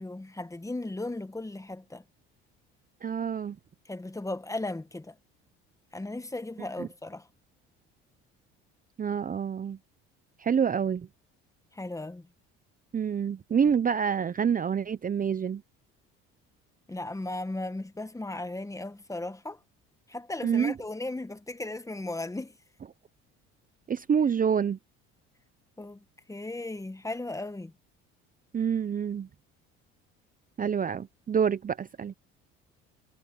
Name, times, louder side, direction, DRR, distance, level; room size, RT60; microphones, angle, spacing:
voice 1, 0.0-2.0 3.9-5.2 5.9-7.3 11.7-12.3 16.9-19.6 20.1-22.5 25.8-27.7, left 2 dB, 10° left, 1.6 m, -36 dB
voice 2, 3.0-3.6 6.8-6.9 9.0-9.8 10.4-11.1 12.9-15.6 20.4-20.7 23.9-24.8 28.5-29.3 30.6-32.1, right 7 dB, 30° right, 0.7 m, -27 dB
supercardioid pair, 80°, 29 cm